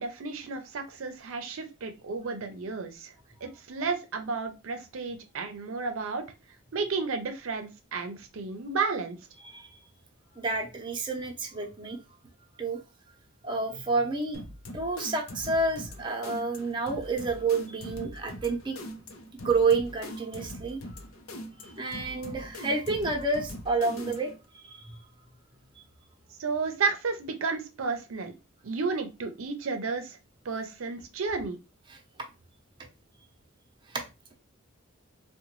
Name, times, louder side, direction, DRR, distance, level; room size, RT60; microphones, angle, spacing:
voice 1, 0.0-3.1 3.4-6.2 6.7-9.2 26.4-28.3 28.6-30.2 30.5-31.6, right 4 dB, 75° right, 0.5 m, -32 dB
voice 2, 9.4-9.8 10.3-12.0 12.6-12.8 13.4-14.4 14.7-18.8 19.4-21.1 21.6-25.1 31.9-32.0 33.9-34.1, right 3 dB, 25° right, 0.7 m, -29 dB
sound 1, 14.3-24.4, equal, 90° left, 0.6 m, -42 dB
3.7 x 2.2 x 3.0 m
head